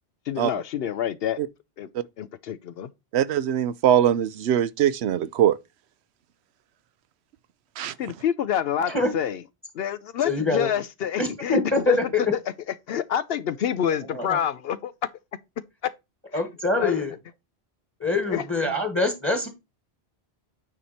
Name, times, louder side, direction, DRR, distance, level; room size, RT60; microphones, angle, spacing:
voice 1, 0.3-1.4 1.8-1.9 2.2-2.9 8.0-9.4 9.7-11.6 11.9-12.0 12.9-14.9 15.8-15.9 16.8-17.0 18.3-18.7, left 9 dB, 70° left, 0.8 m, -27 dB
voice 2, 3.1-5.6 7.8-7.9, right 10 dB, 80° right, 0.9 m, -22 dB
voice 3, 10.2-10.7 11.2-12.2 14.1-14.4 16.3-17.1 18.0-19.5, left 2 dB, 10° left, 1.6 m, -24 dB
9.2 x 4.3 x 4.2 m
omnidirectional pair, 1.1 m